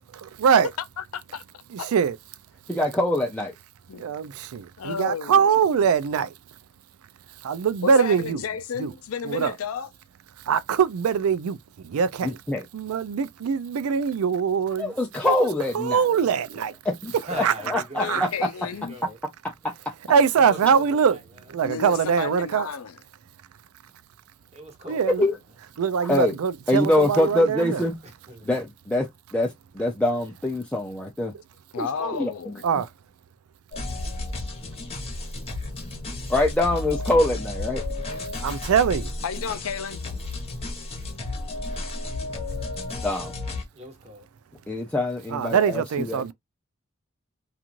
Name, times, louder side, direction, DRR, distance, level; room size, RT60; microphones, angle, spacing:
voice 1, 0.2-0.7 1.7-2.2 4.0-6.3 7.4-8.4 8.8-8.9 9.3-9.5 10.5-11.6 11.8-12.4 12.7-14.9 15.2-15.3 15.7-16.7 17.4-17.5 18.0-18.3 20.1-21.2 21.5-22.7 24.9-25.2 25.8-27.8 32.6-32.9 38.4-39.1 45.3-46.3, right 6 dB, 90° right, 0.4 m, -22 dB
voice 2, 1.0-1.4 1.8-1.9 3.9-4.0 4.8-5.4 7.8-9.9 18.0-18.9 21.6-23.0 31.7-32.7 39.2-40.0, left 6 dB, 85° left, 0.5 m, -32 dB
voice 3, 2.7-3.5 12.2-12.6 14.8-16.1 16.8-18.5 19.6-19.7 25.2-25.4 26.0-26.4 26.7-28.0 28.5-31.3 31.8-32.5 36.3-37.8 43.0-43.3 44.7-46.3, left 1 dB, 5° left, 0.4 m, -24 dB
voice 4, 17.1-18.2 18.6-19.2 20.3-21.5 24.5-25.1 28.0-28.5 37.8-38.3 43.7-44.3, right 1 dB, 30° right, 1.1 m, -41 dB
sound 1, 33.7-43.6, left 2 dB, 30° left, 1.0 m, -33 dB
3.0 x 2.4 x 2.4 m
head